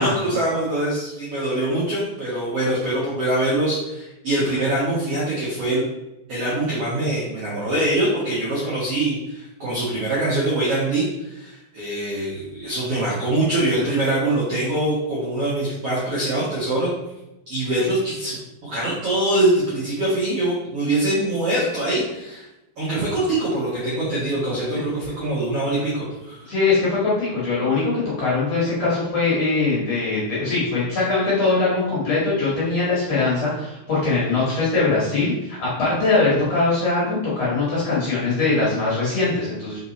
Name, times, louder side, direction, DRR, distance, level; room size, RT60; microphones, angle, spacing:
voice 1, 0.0-5.8 6.3-16.9 17.5-22.4 22.8-26.5, right 1 dB, 60° right, -8 dB, 1.6 m, -23 dB
voice 2, 26.5-27.9 28.2-39.8, left 3 dB, 50° left, -7 dB, 2.1 m, -21 dB
5.7 x 4.3 x 4.1 m, 0.94 s
omnidirectional pair, 4.9 m